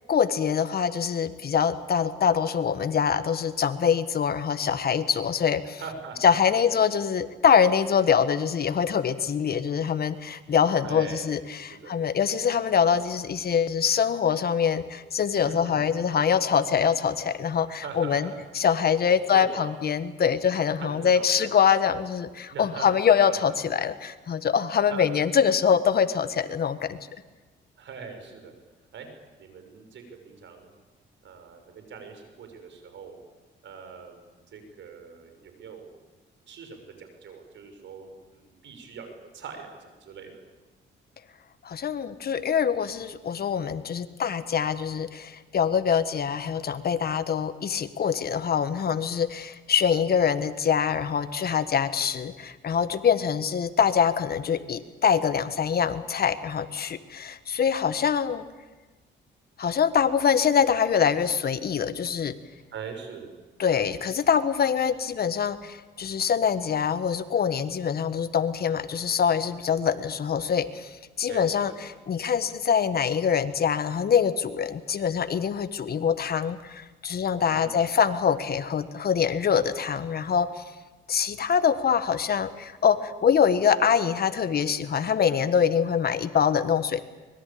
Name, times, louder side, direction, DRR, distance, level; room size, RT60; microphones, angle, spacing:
voice 1, 0.1-5.8 6.2-18.3 18.5-27.0 41.6-58.5 59.6-62.3 63.6-80.6 81.1-87.0, left 7 dB, 50° left, 12 dB, 1.5 m, -24 dB
voice 2, 5.8-6.4 6.7-6.8 10.8-11.9 15.4-15.9 17.8-18.5 19.3-19.7 20.8-21.5 22.5-22.9 23.2-23.6 24.9-25.2 27.8-28.5 28.9-29.1 29.4-30.7 31.2-33.2 33.6-35.9 36.5-40.4 62.7-63.3 71.3-71.8 77.4-77.9, right 5 dB, 70° right, 6 dB, 6.2 m, -42 dB
24.5 x 22.0 x 8.7 m, 1.2 s
cardioid pair, 90°, 20 cm